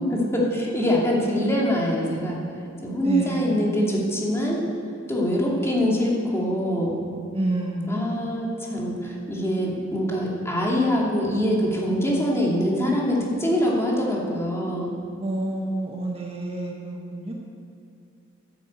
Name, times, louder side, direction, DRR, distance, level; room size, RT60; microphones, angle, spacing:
voice 1, 0.0-2.4 2.8-4.6 5.1-7.0 7.9-14.9, equal, 15° left, -4 dB, 2.6 m, -24 dB
voice 2, 3.0-3.6 7.3-8.2 15.2-17.3, right 1 dB, 30° right, -1 dB, 1.3 m, -28 dB
10.5 x 9.8 x 8.2 m, 2.6 s
head